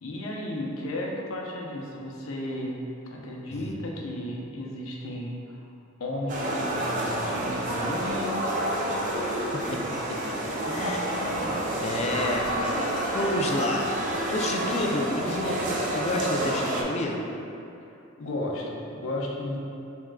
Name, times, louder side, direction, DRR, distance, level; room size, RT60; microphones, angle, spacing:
voice 1, 0.0-2.8 3.1-5.4 6.0-8.3 18.2-19.6, left 1 dB, 85° left, -2 dB, 0.7 m, -33 dB
sound 1, 6.3-16.8, right 1 dB, 40° right, 0.6 m, -29 dB
voice 2, 9.5-10.3 10.6-13.9 14.3-17.2, left 1 dB, 35° left, 1 dB, 0.4 m, -31 dB
6.1 x 3.5 x 2.2 m, 2.7 s
head